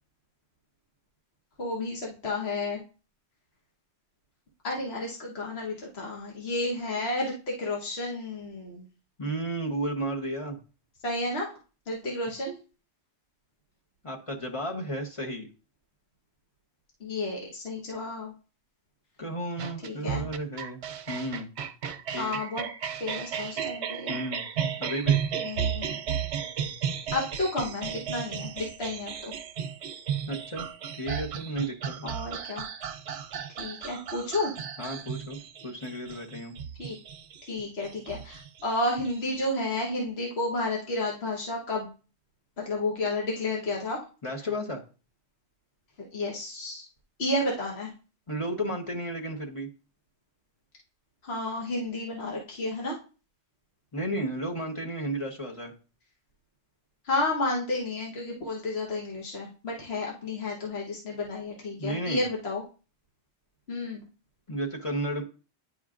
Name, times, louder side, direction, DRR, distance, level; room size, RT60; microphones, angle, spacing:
voice 1, 1.6-2.8 4.6-8.8 11.0-11.5 11.9-12.6 17.0-18.3 19.8-20.2 22.2-22.7 23.0-24.2 25.4-26.0 27.1-29.3 32.0-32.6 33.6-34.5 36.8-37.0 37.5-41.9 42.6-44.0 46.0-46.9 47.2-47.9 51.2-53.0 57.0-62.6 63.7-64.0, left 2 dB, 70° left, -3 dB, 1.5 m, -31 dB
voice 2, 9.2-10.6 14.0-15.5 19.2-21.5 22.1-22.4 24.1-24.4 24.8-25.2 30.3-30.7 31.0-32.1 34.8-36.5 44.2-44.8 48.3-49.7 53.9-55.7 61.8-62.2 64.5-65.2, right 1 dB, 30° left, 1 dB, 1.1 m, -33 dB
sound 1, 19.6-39.4, right 8 dB, 85° right, 0.9 m, -34 dB
9.9 x 5.0 x 2.5 m, 0.35 s
omnidirectional pair, 1.1 m